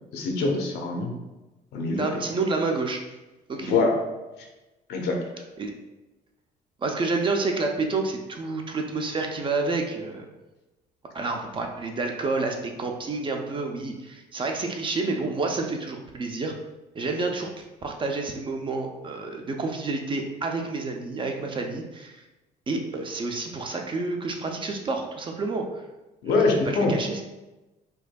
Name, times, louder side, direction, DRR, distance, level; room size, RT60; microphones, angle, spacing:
voice 1, 0.1-1.1 1.7-2.1 3.6-4.0 4.9-5.2 26.2-26.9, left 3 dB, 80° left, 2 dB, 0.7 m, -24 dB
voice 2, 2.0-3.0 3.5-3.8 5.6-5.7 6.8-10.3 11.1-16.5 16.9-22.2 22.7-25.8 26.4-27.2, right 3 dB, 30° right, 3 dB, 0.5 m, -29 dB
4.5 x 2.6 x 2.2 m, 1.1 s
cardioid pair, 110°, 17 cm